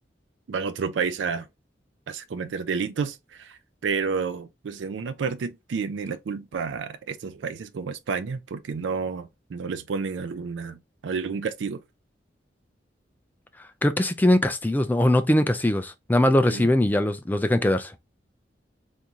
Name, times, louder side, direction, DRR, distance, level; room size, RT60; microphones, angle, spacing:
voice 1, 0.5-1.5 2.1-11.8 16.5-16.7, right 5 dB, 90° right, 0.4 m, -30 dB
voice 2, 13.8-17.9, left 1 dB, 10° left, 0.3 m, -21 dB
3.5 x 2.6 x 2.8 m
head